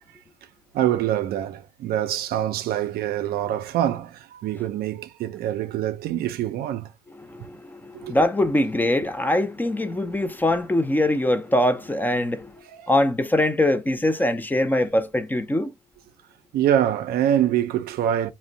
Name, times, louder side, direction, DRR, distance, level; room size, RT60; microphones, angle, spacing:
voice 1, 0.7-6.9 7.4-7.5 7.9-8.1 12.7-12.9 16.5-18.3, right 11 dB, 65° right, 0.4 m, -25 dB
voice 2, 7.2-15.7, left 1 dB, 10° left, 0.4 m, -23 dB
2.5 x 2.1 x 3.7 m
cardioid pair, 110°, 17 cm